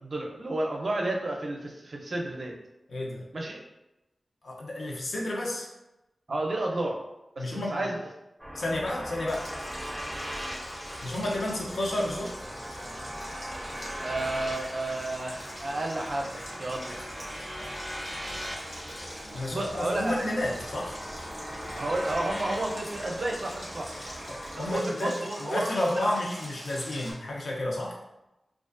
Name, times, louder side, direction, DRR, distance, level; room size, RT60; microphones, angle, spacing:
voice 1, 0.0-2.5 3.3-3.6 6.3-7.0 7.4-8.0 14.0-17.0 19.5-20.2 21.8-23.9 24.6-26.2, right 2 dB, 55° right, 0 dB, 0.5 m, -31 dB
voice 2, 2.9-3.2 4.4-5.7 7.4-7.8 8.5-9.5 11.0-12.4 19.2-21.0 24.3-28.0, left 1 dB, 80° left, -2 dB, 0.5 m, -31 dB
sound 1, 8.4-24.8, equal, 10° right, 0.5 m, -39 dB
Stream, 9.3-27.1, equal, 65° left, 1.0 m, -44 dB
2.3 x 2.3 x 2.4 m, 0.93 s
wide cardioid pair, 85°, 0 cm